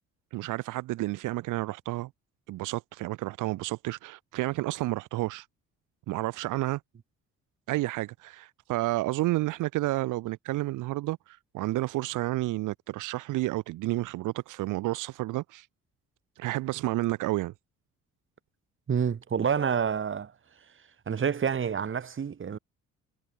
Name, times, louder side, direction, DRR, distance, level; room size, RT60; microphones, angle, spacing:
voice 1, 0.3-2.1 2.5-5.5 6.1-6.8 7.7-15.7 16.4-17.5, right 18 dB, 90° right, 0.9 m, -30 dB
voice 2, 18.9-20.3 21.1-22.6, right 7 dB, 40° right, 2.1 m, -28 dB
cardioid pair, 90°, 30 cm